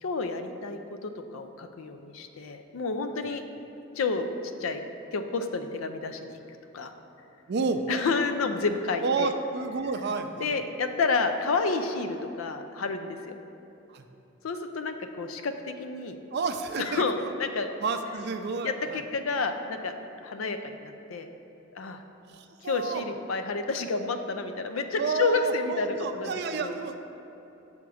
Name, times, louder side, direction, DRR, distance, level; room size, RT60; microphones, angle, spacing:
voice 1, 0.0-3.4 4.0-4.3 4.6-4.8 5.1-6.4 6.7-6.9 7.9-9.3 10.4-13.4 14.4-16.2 16.8-17.7 18.6-19.9 20.2-21.3 21.7-22.0 22.6-26.8, left 4 dB, 85° left, 7 dB, 0.4 m, -30 dB
voice 2, 7.5-7.8 9.0-10.5 13.9-14.0 16.3-17.3 17.8-19.0 22.3-23.0 25.0-27.0, right 4 dB, 55° right, 7 dB, 0.4 m, -30 dB
6.8 x 3.6 x 6.2 m, 3.0 s
head